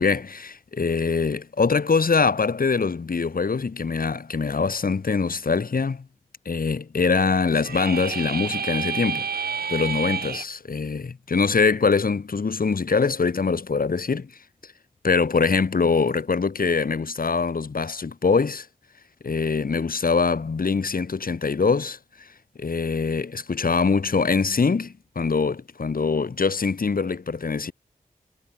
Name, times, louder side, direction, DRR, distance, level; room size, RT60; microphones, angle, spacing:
voice 1, 0.0-6.1 6.5-14.3 15.0-18.7 19.2-22.0 22.6-27.7, left 4 dB, 65° left, 3.9 m, -23 dB
sound 1, 7.5-10.4, right 6 dB, 80° right, 2.2 m, -29 dB
cardioid pair, 45°, 16 cm